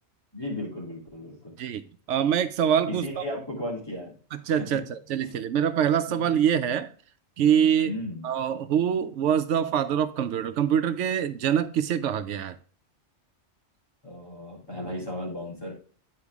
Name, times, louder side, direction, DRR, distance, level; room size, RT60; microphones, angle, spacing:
voice 1, 0.3-1.5 2.9-4.1 4.6-4.7 5.2-5.3 6.1-6.3 7.8-8.3 14.0-15.7, left 1 dB, 20° left, 3.3 m, -35 dB
voice 2, 1.6-3.2 4.3-6.9 7.4-8.0 8.2-12.6, right 9 dB, 85° right, 1.0 m, -25 dB
9.8 x 4.8 x 3.5 m
omnidirectional pair, 1.2 m